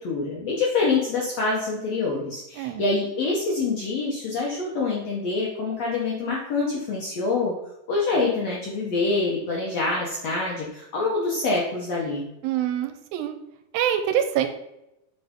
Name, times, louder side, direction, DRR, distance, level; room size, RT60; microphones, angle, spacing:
voice 1, 0.0-7.5 7.9-12.2, left 3 dB, 70° left, -3 dB, 1.6 m, -26 dB
voice 2, 12.4-13.4 13.7-14.5, right 10 dB, 80° right, 9 dB, 2.3 m, -25 dB
8.0 x 5.0 x 3.6 m, 0.88 s
omnidirectional pair, 4.4 m